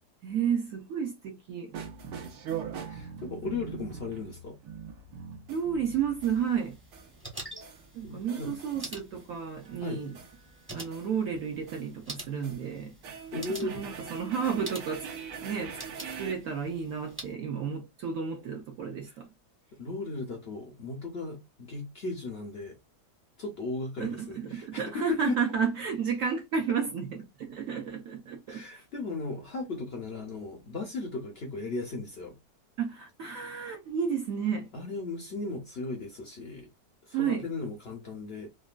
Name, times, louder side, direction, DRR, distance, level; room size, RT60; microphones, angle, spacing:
voice 1, 0.2-1.7 5.5-6.8 7.9-10.2 10.7-12.9 13.4-15.1 15.4-15.8 16.2-19.3 24.0-28.8 32.8-34.7 37.1-37.5, right 7 dB, 70° right, 0.8 m, -32 dB
sound 1, 1.7-6.4 6.9-7.2 7.6-7.9 8.3-9.3 9.6-11.1 11.7-11.9 12.3-12.6 13.0-16.4, right 7 dB, 85° right, 1.4 m, -42 dB
voice 2, 2.9-4.6 8.0-8.6 9.8-10.0 13.3-14.0 19.8-22.8 23.4-25.4 28.5-32.4 34.7-36.7 37.1-38.5, left 3 dB, 65° left, 0.6 m, -36 dB
sound 2, 6.2-17.3, right 1 dB, 15° right, 0.5 m, -47 dB
3.6 x 2.2 x 2.4 m
omnidirectional pair, 1.8 m